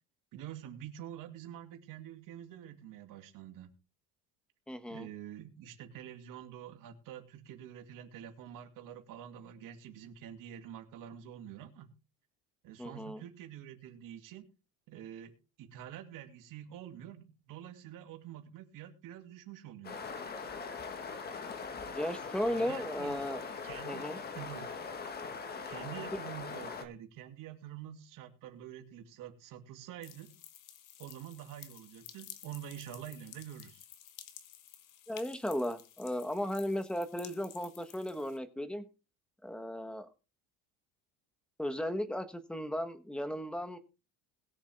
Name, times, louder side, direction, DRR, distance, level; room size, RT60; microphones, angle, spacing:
voice 1, 0.3-3.7 4.9-11.9 12.6-14.5 14.9-20.0 22.5-23.1 23.6-24.7 25.7-30.3 31.0-33.9, right 10 dB, 55° right, 5 dB, 2.6 m, -47 dB
voice 2, 4.7-5.1 12.8-13.2 21.9-23.4 23.9-24.2 35.1-38.8 39.4-40.1 41.6-43.8, left 1 dB, ahead, 9 dB, 1.2 m, -35 dB
sound 1, 19.8-26.8, left 5 dB, 25° left, 1.5 m, -41 dB
sound 2, 30.0-38.4, left 11 dB, 55° left, 1.8 m, -53 dB
21.0 x 7.1 x 3.5 m, 0.32 s
cardioid pair, 160°, 39 cm